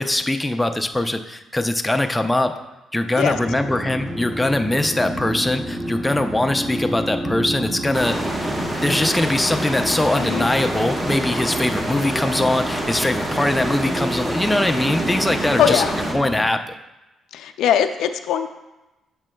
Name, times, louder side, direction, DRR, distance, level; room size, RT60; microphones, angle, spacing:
voice 1, 0.0-2.5 2.9-8.2 8.8-15.8 16.1-16.7, left 1 dB, 10° left, 6 dB, 0.4 m, -22 dB
sound 1, 3.2-16.4, right 1 dB, 50° right, 1.6 m, -30 dB
sound 2, 7.9-16.1, right 1 dB, 20° right, 1.0 m, -27 dB
voice 2, 10.1-10.5 15.6-15.9 17.3-18.5, left 9 dB, 80° left, 9 dB, 0.3 m, -20 dB
7.2 x 6.1 x 2.2 m, 1.0 s
cardioid pair, 90°, 0 cm